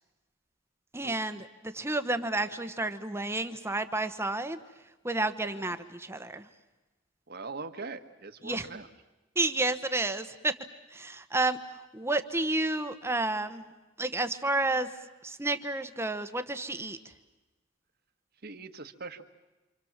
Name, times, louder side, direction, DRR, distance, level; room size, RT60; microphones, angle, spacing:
voice 1, 0.9-4.6 5.0-6.5 8.4-8.7 9.3-10.5 10.9-11.6 11.9-13.7 14.0-14.9 15.2-17.0, right 2 dB, 15° right, 9 dB, 1.2 m, -30 dB
voice 2, 7.3-8.9 18.4-19.2, right 4 dB, 50° right, 8 dB, 1.6 m, -41 dB
28.0 x 27.5 x 7.4 m, 1.1 s
head